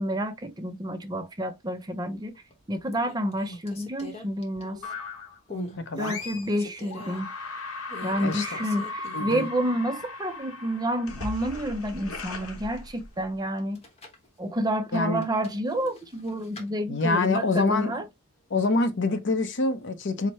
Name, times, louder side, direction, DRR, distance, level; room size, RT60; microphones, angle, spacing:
voice 1, 0.0-2.3 2.7-4.8 6.0-7.3 8.0-13.8 14.4-18.0, equal, 20° right, 0.5 m, -29 dB
sound 1, 2.1-2.5 2.9-5.1 5.5-5.8 6.2-7.2 7.9-9.7 10.0-10.1 13.6-14.3 15.2-16.7, left 1 dB, 30° left, 0.9 m, -42 dB
sound 2, 4.8-5.4 6.0-6.6 6.9-13.4, left 3 dB, 75° left, 1.0 m, -37 dB
voice 2, 5.8-6.2 8.2-8.5 9.1-9.5 14.9-15.2 16.9-18.0 18.5-20.3, left 3 dB, 55° left, 0.6 m, -26 dB
4.6 x 2.1 x 4.1 m
head